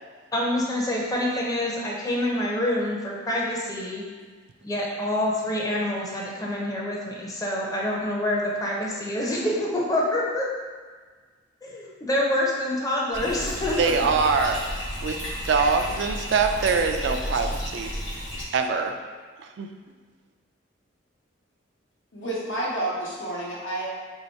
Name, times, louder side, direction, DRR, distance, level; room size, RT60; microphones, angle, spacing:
voice 1, 0.3-4.0 4.6-10.5 11.6-13.8, left 1 dB, 20° left, -3 dB, 0.5 m, -26 dB
Bathtub (filling or washing), 13.1-18.4, equal, 65° left, 1.2 m, -32 dB
voice 2, 13.8-14.6 15.0-17.9 18.5-19.0 19.6-19.7, right 5 dB, 60° right, 5 dB, 0.3 m, -24 dB
voice 3, 22.1-23.9, right 1 dB, 85° left, -5 dB, 1.0 m, -30 dB
3.0 x 2.8 x 4.3 m, 1.5 s
head